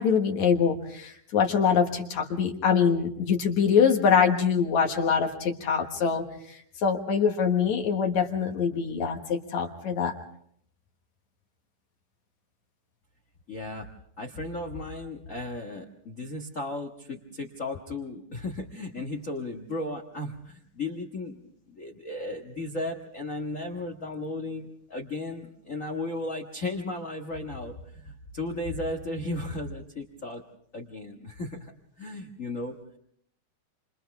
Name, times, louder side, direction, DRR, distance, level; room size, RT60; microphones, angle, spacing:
voice 1, 0.0-10.1, left 6 dB, 65° left, 3 dB, 2.8 m, -24 dB
voice 2, 13.5-13.9 14.2-21.4 21.7-30.4 30.7-31.7 32.0-32.7, left 2 dB, 40° left, 2 dB, 1.2 m, -35 dB
27.5 x 27.5 x 3.5 m, 0.66 s
omnidirectional pair, 3.6 m